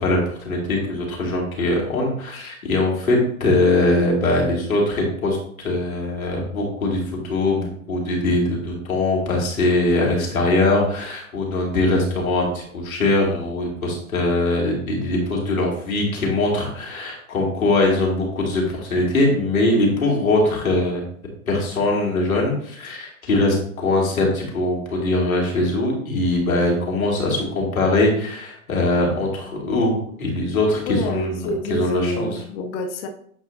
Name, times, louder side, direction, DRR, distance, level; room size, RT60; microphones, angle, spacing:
voice 1, 0.0-21.0 21.5-32.3, left 2 dB, 75° left, -1 dB, 2.5 m, -21 dB
voice 2, 30.9-33.1, left 1 dB, 30° left, 5 dB, 0.6 m, -28 dB
8.1 x 4.9 x 2.6 m, 0.62 s
hypercardioid pair, 115°, 42 cm